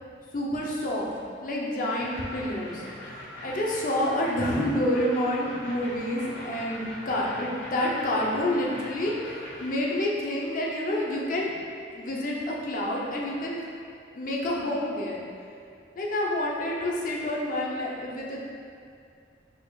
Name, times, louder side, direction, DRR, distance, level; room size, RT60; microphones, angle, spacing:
voice 1, 0.3-1.1 1.4-9.1 9.6-11.6 11.9-13.6 14.1-15.2 15.9-18.4, left 1 dB, 50° left, -3 dB, 0.7 m, -28 dB
sound 1, 1.9-9.8, left 1 dB, 75° left, 0.9 m, -42 dB
5.0 x 4.2 x 2.4 m, 2.4 s
head